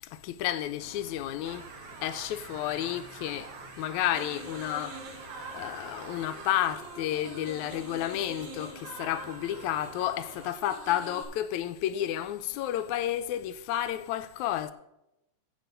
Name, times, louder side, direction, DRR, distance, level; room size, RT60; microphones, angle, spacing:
voice 1, 0.0-1.7 2.0-5.1 5.5-14.7, left 12 dB, 85° left, 2.0 m, -31 dB
sound 1, 0.8-10.5, right 1 dB, 30° right, 2.3 m, -52 dB
sound 2, 1.4-6.7, right 5 dB, 60° right, 2.1 m, -46 dB
sound 3, 4.1-11.2, right 3 dB, 85° right, 3.3 m, -45 dB
10.5 x 8.3 x 5.2 m
omnidirectional pair, 3.4 m